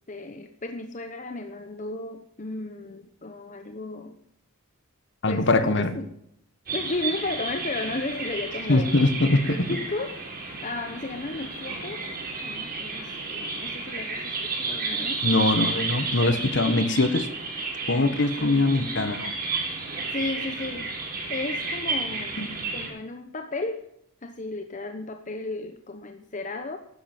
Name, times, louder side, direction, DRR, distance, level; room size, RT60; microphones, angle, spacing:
voice 1, 0.1-4.2 5.3-6.1 6.7-8.9 9.5-12.0 12.4-15.3 18.1-18.6 20.1-20.9 21.3-22.4 22.7-23.9 24.2-26.8, left 2 dB, 35° left, 7 dB, 0.9 m, -34 dB
voice 2, 5.2-5.9 8.7-9.7 15.2-17.3 17.9-19.3 22.4-22.5, left 2 dB, 55° left, 10 dB, 1.5 m, -22 dB
sound 1, 6.7-22.9, right 4 dB, 40° right, 6.5 m, -32 dB
12.5 x 9.8 x 9.0 m, 0.75 s
head